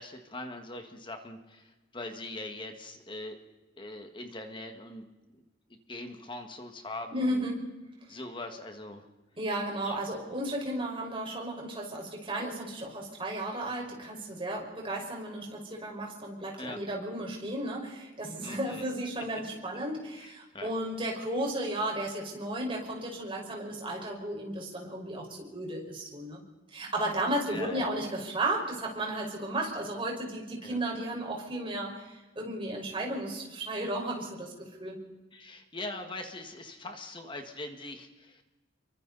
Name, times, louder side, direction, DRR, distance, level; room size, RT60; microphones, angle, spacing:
voice 1, 0.0-3.4 3.8-5.1 5.9-7.5 8.1-9.0 9.8-10.0 16.6-16.8 18.4-18.8 20.2-20.7 27.5-27.9 30.6-30.8 35.3-38.4, left 2 dB, 25° left, 5 dB, 1.8 m, -41 dB
voice 2, 7.1-7.6 8.1-8.2 9.4-26.4 26.7-35.0, right 1 dB, 30° right, -1 dB, 5.2 m, -34 dB
28.0 x 24.0 x 4.1 m, 1.1 s
head